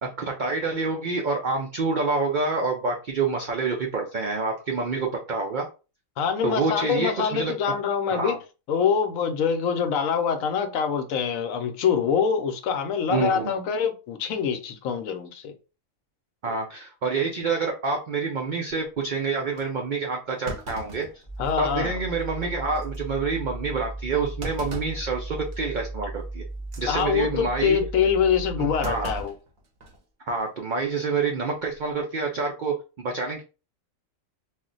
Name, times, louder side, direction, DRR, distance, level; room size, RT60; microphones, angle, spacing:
voice 1, 0.0-5.7 6.4-7.5 8.1-8.4 13.1-13.5 16.4-21.1 21.6-26.4 26.8-27.8 28.6-29.1 30.3-33.4, right 4 dB, 90° right, 0.4 m, -27 dB
voice 2, 6.2-8.4 8.7-15.5 21.4-22.0 26.9-29.3, left 7 dB, 75° left, 1.0 m, -25 dB
Thump thud, 18.9-19.0 19.6-19.7 20.4-21.8 22.2-22.3 22.7-23.0 24.4-25.1 25.5-25.8 26.6-26.9 28.8-30.0 30.3-30.4 31.6-31.9, right 1 dB, 50° right, 0.7 m, -40 dB
sound 1, 21.3-29.2, right 2 dB, 20° left, 0.4 m, -36 dB
2.4 x 2.1 x 3.7 m
omnidirectional pair, 1.4 m